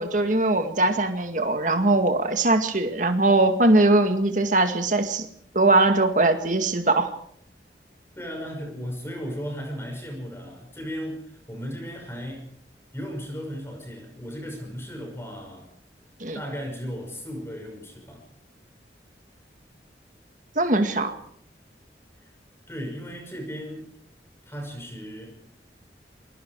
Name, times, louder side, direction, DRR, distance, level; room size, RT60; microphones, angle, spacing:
voice 1, 0.0-5.3 5.5-7.1 16.2-16.4 20.6-21.1, right 2 dB, 45° right, 6 dB, 2.1 m, -21 dB
voice 2, 8.2-12.4 12.9-15.7 16.3-18.2 22.2-22.3 22.7-23.8 24.5-25.4, equal, 15° left, 2 dB, 6.0 m, -36 dB
27.5 x 21.0 x 4.8 m, 0.66 s
head